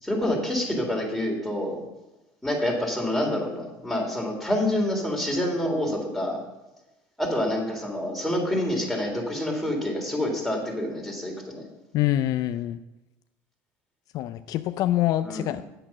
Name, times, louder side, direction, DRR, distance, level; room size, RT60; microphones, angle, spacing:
voice 1, 0.0-1.8 2.4-6.4 7.2-11.7 15.2-15.5, left 1 dB, ahead, -1 dB, 3.4 m, -27 dB
voice 2, 11.9-12.8 14.1-15.6, left 13 dB, 60° left, 11 dB, 0.4 m, -25 dB
8.9 x 7.4 x 6.0 m, 1.0 s
supercardioid pair, 90°, 7 cm